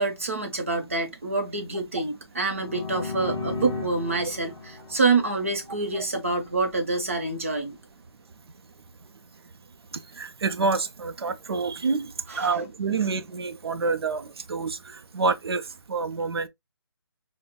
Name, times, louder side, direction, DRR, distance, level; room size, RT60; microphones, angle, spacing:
voice 1, 0.0-7.8 12.3-12.5, right 3 dB, 30° right, 0.7 m, -27 dB
sound 1, 2.5-6.2, left 3 dB, 5° left, 0.4 m, -35 dB
voice 2, 9.9-16.5, right 4 dB, 65° right, 0.5 m, -28 dB
5.1 x 2.1 x 2.2 m
hypercardioid pair, 180°, 14 cm